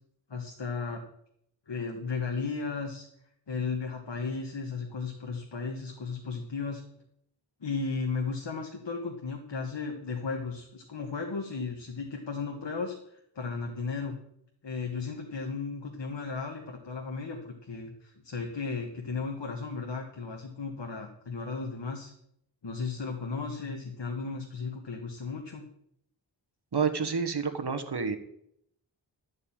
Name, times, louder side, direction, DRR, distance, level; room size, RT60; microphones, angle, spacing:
voice 1, 0.3-1.0 1.7-3.1 3.5-6.8 7.6-14.2 14.6-22.1 22.6-25.7, left 4 dB, 70° left, 2 dB, 1.7 m, -35 dB
voice 2, 26.7-28.2, right 5 dB, 60° right, 7 dB, 1.4 m, -29 dB
13.0 x 5.3 x 8.8 m, 0.72 s
cardioid pair, 45°, 44 cm